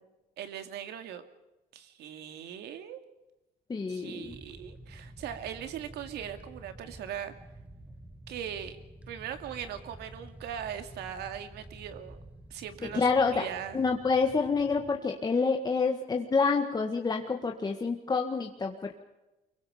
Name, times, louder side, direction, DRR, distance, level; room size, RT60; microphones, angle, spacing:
voice 1, 0.4-1.2 1.7-3.0 3.9-7.3 8.3-8.8 9.1-12.2 12.5-13.8, right 9 dB, 75° right, 8 dB, 2.4 m, -40 dB
voice 2, 3.7-4.3 12.9-13.5 13.7-18.9, left 4 dB, 25° left, 3 dB, 1.7 m, -28 dB
sound 1, 4.2-15.0, right 1 dB, 5° right, 1.6 m, -50 dB
25.0 x 22.5 x 5.2 m, 1.0 s
cardioid pair, 110°, 17 cm